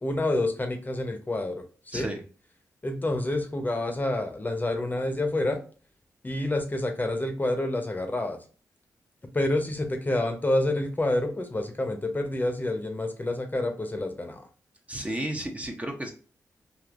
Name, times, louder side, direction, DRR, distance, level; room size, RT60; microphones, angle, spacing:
voice 1, 0.0-2.1 2.8-5.6 6.2-8.4 9.3-14.4, left 1 dB, 30° left, 5 dB, 0.7 m, -28 dB
voice 2, 14.9-16.1, right 1 dB, 20° right, 3 dB, 0.6 m, -32 dB
3.4 x 2.5 x 2.4 m, 0.39 s
cardioid pair, 55°, 6 cm